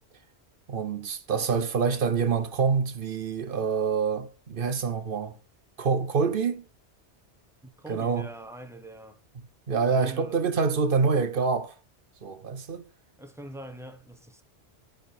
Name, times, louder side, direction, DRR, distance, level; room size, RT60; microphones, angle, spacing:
voice 1, 0.7-5.4 5.8-6.6 7.9-8.3 9.7-11.7 12.2-12.8, right 5 dB, 55° right, 1.0 m, -26 dB
voice 2, 7.6-9.2 9.9-10.4 13.2-14.4, right 1 dB, 5° right, 1.0 m, -43 dB
12.0 x 5.1 x 4.2 m
omnidirectional pair, 1.2 m